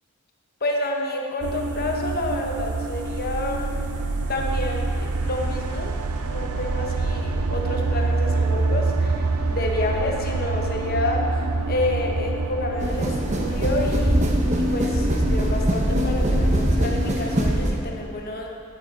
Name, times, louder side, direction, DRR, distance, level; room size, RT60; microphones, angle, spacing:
voice 1, 0.6-3.7 4.3-5.9 6.3-11.4 11.7-18.5, left 2 dB, 45° left, 1 dB, 0.9 m, -29 dB
sound 1, 1.4-15.5, right 3 dB, 85° right, 0.5 m, -26 dB
sound 2, 12.8-17.8, right 1 dB, 30° right, 0.7 m, -22 dB
10.0 x 4.7 x 5.1 m, 2.4 s
head